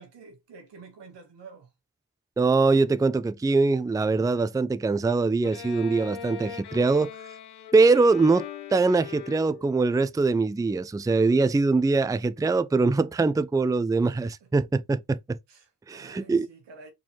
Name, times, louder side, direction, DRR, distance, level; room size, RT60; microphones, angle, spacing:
voice 1, 0.0-1.7 15.5-16.9, right 4 dB, 90° right, 1.5 m, -48 dB
voice 2, 2.4-7.1 7.7-15.4 15.9-16.5, right 3 dB, 10° right, 0.4 m, -23 dB
Bowed string instrument, 5.4-9.9, left 8 dB, 75° left, 0.9 m, -40 dB
4.5 x 2.7 x 4.3 m
supercardioid pair, 40°, 41 cm